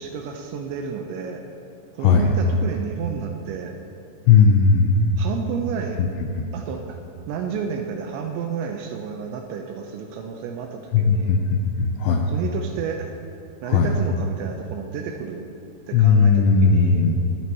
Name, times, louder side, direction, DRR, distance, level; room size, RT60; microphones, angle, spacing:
voice 1, 0.0-1.4 1.9-3.7 5.2-6.0 6.5-7.0 7.3-11.4 12.1-13.1 13.6-15.4 15.9-17.0, right 6 dB, 85° right, 3 dB, 2.7 m, -31 dB
voice 2, 2.0-2.3 4.3-5.1 6.0-6.1 6.4-6.5 10.9-12.3 13.6-14.0 15.9-17.2, left 5 dB, 80° left, 2 dB, 2.6 m, -17 dB
24.5 x 9.4 x 2.9 m, 2.6 s
omnidirectional pair, 5.7 m